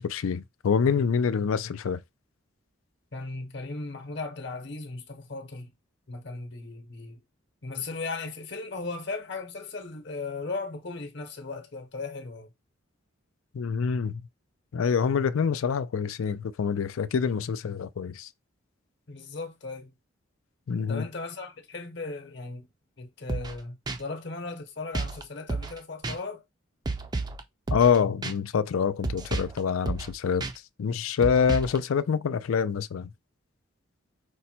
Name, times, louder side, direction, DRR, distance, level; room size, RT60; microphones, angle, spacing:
voice 1, 0.0-2.0 13.5-14.2 14.7-18.3 20.7-21.0 27.7-30.5 30.8-33.1, left 6 dB, 85° left, 0.4 m, -26 dB
voice 2, 3.1-5.7 6.1-7.2 7.6-12.5 19.1-19.9 20.9-22.7 23.0-26.4, left 3 dB, 55° left, 0.9 m, -37 dB
sound 1, 23.3-23.6 23.9-24.0 24.9-25.2 25.5-25.8 26.0-26.2 26.8-27.4 27.7-28.0 28.2-28.3 29.0-29.6 29.8-30.1 30.4-30.5 31.2-31.8, right 3 dB, 20° right, 0.4 m, -31 dB
5.3 x 2.2 x 4.2 m
head